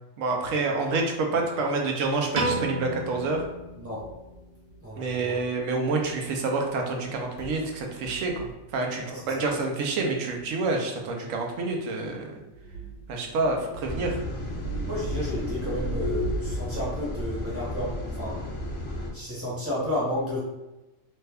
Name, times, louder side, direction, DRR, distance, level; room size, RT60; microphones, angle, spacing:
voice 1, 0.2-3.4 5.0-12.3 13.1-14.2, right 3 dB, 75° right, 2 dB, 1.0 m, -28 dB
Piano, 2.3-4.6, right 2 dB, 50° right, 0.6 m, -32 dB
sound 1, 3.1-5.5 6.0-6.2 6.6-6.7 7.0-8.7 9.4-9.5 10.3-10.5 12.5-16.7, equal, 80° left, 1.2 m, -38 dB
voice 2, 4.8-5.4 9.0-9.5 14.9-18.4 19.1-20.4, left 1 dB, 10° right, -8 dB, 1.0 m, -32 dB
sound 2, 13.8-19.1, equal, 65° left, 1.0 m, -33 dB
3.2 x 2.1 x 3.4 m, 1.0 s
omnidirectional pair, 1.4 m